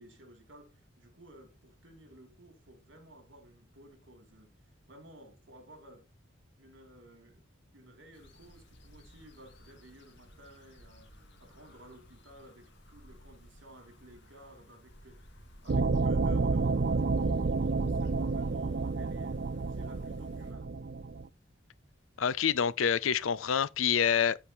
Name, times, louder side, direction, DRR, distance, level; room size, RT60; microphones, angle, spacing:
voice 1, 0.0-6.1 6.6-7.5 7.7-15.2 15.6-20.7, right 1 dB, 65° right, 3.2 m, -55 dB
sound 1, 8.1-20.5, equal, 60° left, 2.0 m, -55 dB
sound 2, 15.7-21.3, right 3 dB, 50° right, 0.5 m, -30 dB
voice 2, 22.2-24.4, left 7 dB, 90° left, 0.5 m, -27 dB
14.0 x 5.0 x 3.0 m
head